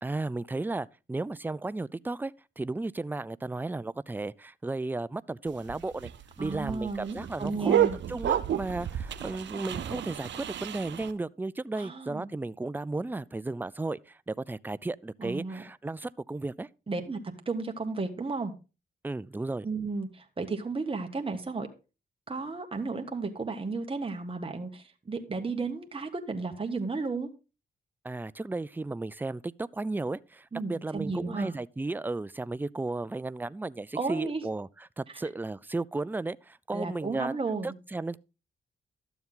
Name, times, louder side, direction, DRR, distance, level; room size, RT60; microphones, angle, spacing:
voice 1, 0.0-6.1 6.4-16.7 19.0-19.7 28.0-37.3 37.6-38.2, right 2 dB, 10° right, 0.4 m, -34 dB
sound 1, 5.5-11.1, right 10 dB, 80° right, 0.7 m, -31 dB
voice 2, 6.4-8.0 11.7-12.3 15.2-15.6 16.9-17.2 17.4-18.5 19.6-21.7 22.3-27.3 30.5-31.5 33.9-34.4 36.7-37.7, right 3 dB, 30° right, 1.5 m, -33 dB
12.5 x 7.1 x 3.8 m
cardioid pair, 60°, 19 cm